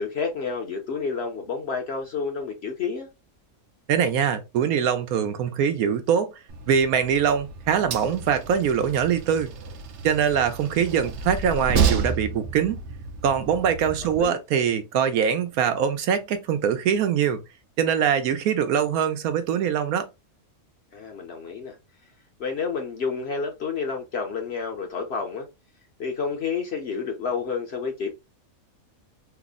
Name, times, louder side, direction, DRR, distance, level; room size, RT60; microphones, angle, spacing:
voice 1, 0.0-3.1 14.2-14.4 20.9-21.8 22.4-25.5 26.0-28.1, left 5 dB, 55° left, 0.8 m, -29 dB
voice 2, 3.9-6.3 6.7-9.5 10.0-12.8 13.2-17.4 17.8-20.1, right 8 dB, 80° right, 1.1 m, -23 dB
Train, 6.5-14.2, right 5 dB, 65° right, 0.8 m, -30 dB
3.3 x 2.0 x 3.6 m
omnidirectional pair, 1.5 m